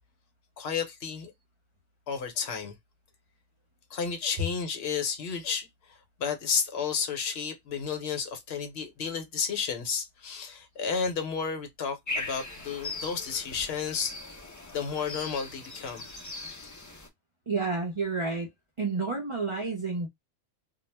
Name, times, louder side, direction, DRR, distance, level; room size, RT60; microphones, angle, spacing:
voice 1, 0.6-1.3 2.1-2.8 3.9-14.2 14.7-16.2, left 6 dB, 60° left, 0.9 m, -32 dB
sound 1, 12.1-17.1, left 2 dB, 30° left, 0.3 m, -39 dB
voice 2, 17.5-18.5 18.8-20.1, right 4 dB, 40° right, 0.4 m, -30 dB
2.3 x 2.0 x 3.1 m
omnidirectional pair, 1.2 m